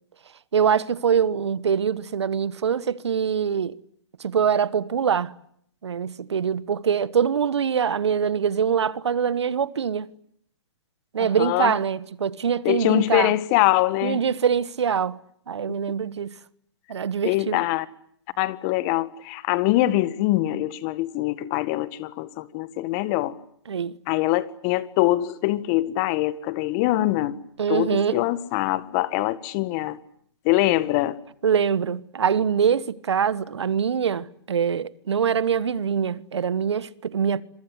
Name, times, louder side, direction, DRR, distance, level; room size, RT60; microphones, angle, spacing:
voice 1, 0.5-3.7 4.2-5.3 5.8-10.1 11.1-13.3 14.0-15.2 15.5-16.4 16.9-17.6 23.7-23.9 27.6-28.2 31.4-37.4, right 7 dB, 70° right, 1.4 m, -24 dB
voice 2, 11.2-11.8 12.6-14.2 17.2-17.9 18.4-23.4 24.1-27.4 27.7-30.0 30.5-31.2, left 17 dB, 35° left, 1.8 m, -23 dB
26.5 x 24.0 x 8.1 m
hypercardioid pair, 135°, 15 cm